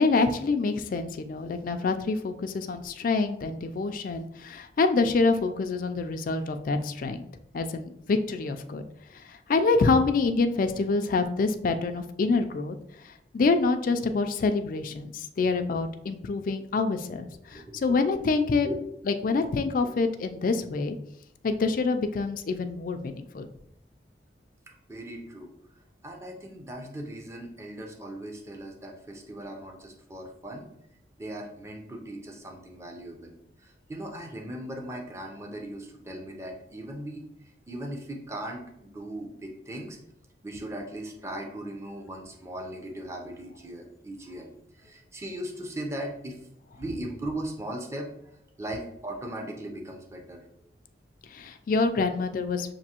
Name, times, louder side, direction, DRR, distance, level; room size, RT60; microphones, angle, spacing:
voice 1, 0.0-7.3 7.5-8.8 9.3-12.8 13.3-18.7 19.1-21.0 21.4-23.5 51.3-52.7, left 3 dB, 50° left, 7 dB, 0.3 m, -26 dB
voice 2, 17.5-17.8 18.6-18.8 19.2-19.3 24.7-25.5 26.0-30.7 31.2-33.4 33.6-37.2 37.7-40.0 40.4-44.5 44.8-46.4 46.8-48.1 48.6-50.4, right 1 dB, 15° right, 1 dB, 0.6 m, -38 dB
6.0 x 2.6 x 2.8 m, 0.75 s
head